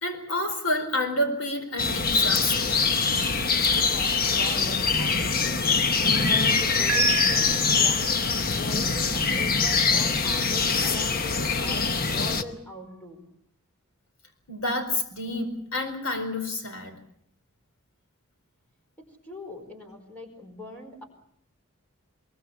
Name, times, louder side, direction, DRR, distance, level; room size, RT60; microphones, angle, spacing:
voice 1, 0.0-2.8 14.5-17.0, left 1 dB, 75° left, 7 dB, 4.5 m, -29 dB
sound 1, 1.8-12.4, left 4 dB, 45° left, 1.1 m, -23 dB
voice 2, 3.9-8.2 8.5-13.3 19.0-21.0, left 1 dB, 5° left, 3 dB, 4.6 m, -41 dB
sound 2, 6.9-8.4, right 8 dB, 70° right, 1.0 m, -32 dB
22.5 x 22.5 x 7.1 m, 0.69 s
head